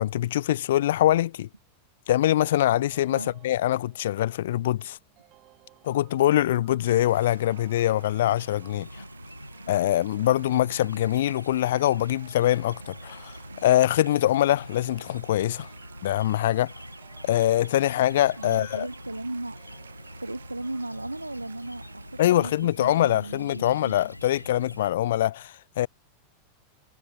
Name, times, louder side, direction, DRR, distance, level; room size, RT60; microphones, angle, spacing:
voice 1, 0.0-1.5 2.1-5.0 5.8-8.9 9.7-15.7 16.0-16.7 17.2-18.9 22.2-25.9, left 13 dB, 60° left, 0.8 m, -23 dB
sound 1, 2.9-22.1, right 18 dB, 40° right, 7.7 m, -59 dB
sound 2, 6.8-22.6, right 7 dB, 70° right, 7.3 m, -53 dB
sound 3, 8.1-24.9, equal, 90° left, 1.3 m, -45 dB
voice 2, 18.4-19.6 20.2-23.9, right 2 dB, 85° right, 3.7 m, -36 dB
figure-of-eight pair, 90°, 0 cm